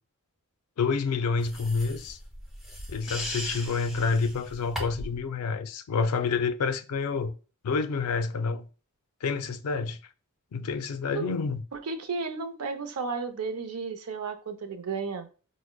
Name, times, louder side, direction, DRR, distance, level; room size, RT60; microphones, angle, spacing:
voice 1, 0.8-2.2 2.9-7.3 7.6-8.6 9.2-10.0 10.5-11.6, left 4 dB, 75° left, 0.4 m, -28 dB
sound 1, 1.4-5.2, equal, ahead, 0.6 m, -39 dB
voice 2, 11.7-15.3, right 4 dB, 80° right, 0.6 m, -33 dB
4.7 x 2.1 x 2.2 m
head